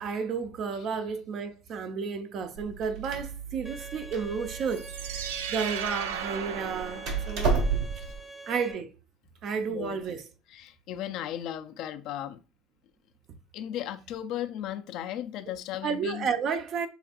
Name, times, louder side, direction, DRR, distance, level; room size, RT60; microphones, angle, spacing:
voice 1, 0.0-7.5 8.5-8.9 9.4-10.2 15.8-16.9, right 6 dB, 55° right, 0.6 m, -32 dB
Door, 2.6-8.2, right 4 dB, 70° right, 1.6 m, -32 dB
Bowed string instrument, 3.6-8.7, right 2 dB, 5° right, 0.7 m, -45 dB
sound 1, 4.6-7.7, right 8 dB, 90° right, 0.3 m, -36 dB
voice 2, 10.5-12.4 13.5-16.3, left 11 dB, 65° left, 0.4 m, -36 dB
5.8 x 2.5 x 2.4 m
supercardioid pair, 85°, 0 cm